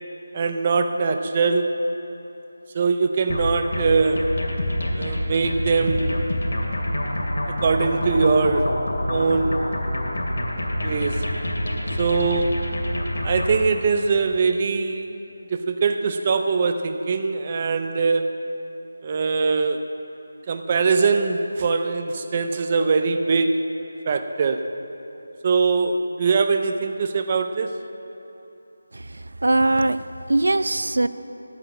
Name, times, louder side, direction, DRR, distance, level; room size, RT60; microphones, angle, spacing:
voice 1, 0.3-1.8 2.7-4.3 4.9-6.2 7.6-8.8 9.1-9.6 10.8-11.3 11.9-12.7 13.2-15.1 15.5-18.6 19.0-19.8 20.5-23.6 24.1-24.7 25.4-27.7, right 4 dB, 20° right, 7 dB, 0.4 m, -22 dB
sound 1, 3.3-13.6, left 1 dB, 80° left, 2.4 m, -27 dB
voice 2, 28.9-31.1, right 2 dB, 80° right, 13 dB, 0.5 m, -21 dB
11.0 x 8.0 x 8.6 m, 3.0 s
figure-of-eight pair, 180°, 0 cm